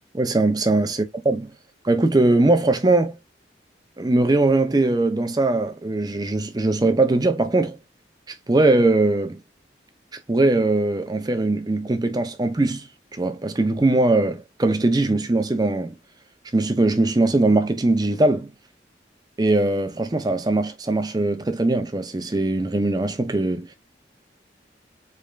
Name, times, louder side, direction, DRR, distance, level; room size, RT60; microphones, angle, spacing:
voice 1, 0.1-1.5 1.8-3.2 4.0-7.8 8.5-9.4 10.3-15.9 16.5-18.5 19.4-23.7, right 2 dB, 20° right, 0.5 m, -21 dB
4.2 x 3.3 x 2.3 m
head